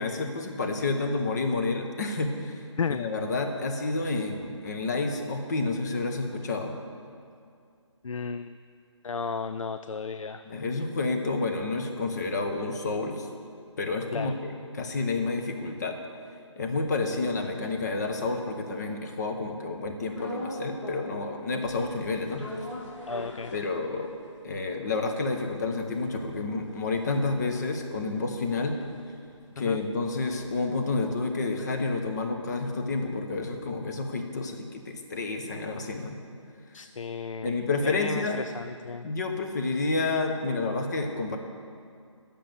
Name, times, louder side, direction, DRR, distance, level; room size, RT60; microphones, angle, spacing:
voice 1, 0.0-2.6 2.9-6.8 10.5-13.3 13.8-16.0 16.6-22.4 23.5-24.1 24.4-28.8 29.6-36.2 37.4-38.4 39.0-41.4, left 3 dB, 35° left, 4 dB, 1.1 m, -29 dB
voice 2, 8.0-8.5 9.0-10.4 14.1-14.3 23.1-23.5 29.6-29.8 36.7-37.5 37.8-39.1, left 5 dB, 90° left, 11 dB, 0.4 m, -33 dB
sound 1, 20.1-21.3 21.6-24.2 24.6-24.7 24.9-29.4 29.7-33.8, left 1 dB, 70° left, 2.8 m, -42 dB
10.0 x 6.8 x 7.7 m, 2.3 s
figure-of-eight pair, 160°, 16 cm